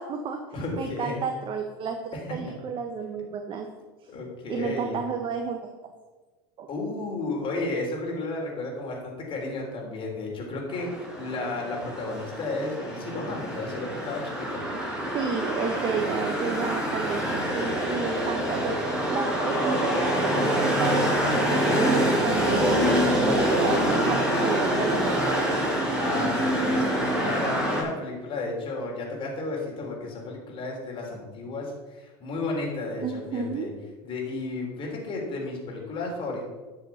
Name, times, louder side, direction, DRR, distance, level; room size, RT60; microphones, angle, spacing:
voice 1, 0.0-0.4 0.8-3.7 4.5-5.7 6.6-6.7 15.1-25.3 33.0-33.7, right 6 dB, 40° right, 4 dB, 1.2 m, -32 dB
voice 2, 0.5-1.2 2.1-2.2 4.1-5.0 6.7-14.6 18.5-18.9 26.0-33.7 34.0-36.4, left 2 dB, 45° left, -1 dB, 3.6 m, -33 dB
sound 1, 10.7-27.8, equal, 5° right, 4.1 m, -25 dB
11.0 x 6.5 x 5.8 m, 1.3 s
supercardioid pair, 100°, 13 cm